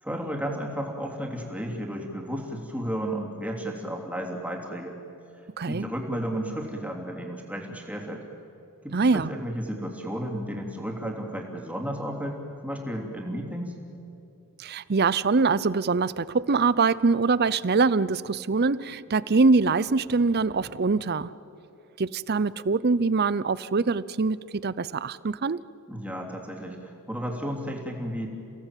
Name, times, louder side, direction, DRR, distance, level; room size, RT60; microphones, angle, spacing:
voice 1, 0.0-5.0 5.7-8.3 8.8-13.7 25.9-28.3, equal, 5° right, 0 dB, 3.2 m, -33 dB
voice 2, 8.9-9.3 14.6-21.3 22.0-24.4 24.6-25.6, right 4 dB, 45° right, 19 dB, 0.6 m, -23 dB
30.0 x 17.5 x 9.1 m, 2.8 s
head